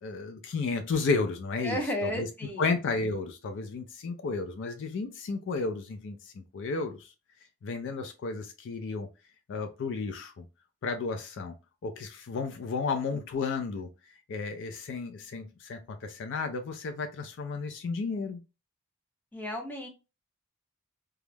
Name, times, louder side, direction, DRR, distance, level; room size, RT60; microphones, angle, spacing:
voice 1, 0.0-2.3 2.6-7.1 7.6-9.1 9.5-10.4 10.8-11.5 11.8-13.9 14.3-18.4, left 4 dB, 55° left, 6 dB, 0.4 m, -33 dB
voice 2, 1.6-2.7 19.3-19.9, equal, 10° left, 1 dB, 0.6 m, -33 dB
2.3 x 2.0 x 3.1 m, 0.29 s
head